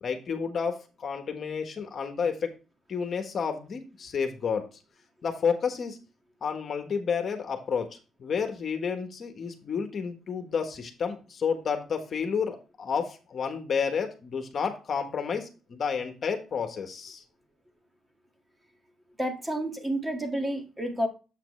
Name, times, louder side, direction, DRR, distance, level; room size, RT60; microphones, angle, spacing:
voice 1, 0.0-2.5 2.9-4.7 5.2-6.0 6.4-17.2, left 6 dB, 50° left, 6 dB, 1.3 m, -30 dB
voice 2, 19.2-21.1, right 1 dB, 15° right, 3 dB, 1.9 m, -30 dB
7.8 x 5.9 x 3.2 m, 0.32 s
cardioid pair, 90°, 0 cm